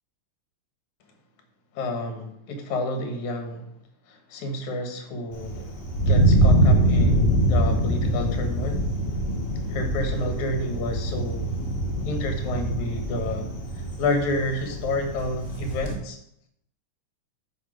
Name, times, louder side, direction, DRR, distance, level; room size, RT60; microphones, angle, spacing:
voice 1, 1.8-3.6 4.3-5.7 6.1-8.8 9.7-11.5 12.0-13.5 14.0-16.2, left 1 dB, 75° left, 5 dB, 2.7 m, -29 dB
Thunder, 5.3-15.9, right 1 dB, 30° left, 1.9 m, -24 dB
9.4 x 6.4 x 5.0 m, 0.77 s
omnidirectional pair, 3.4 m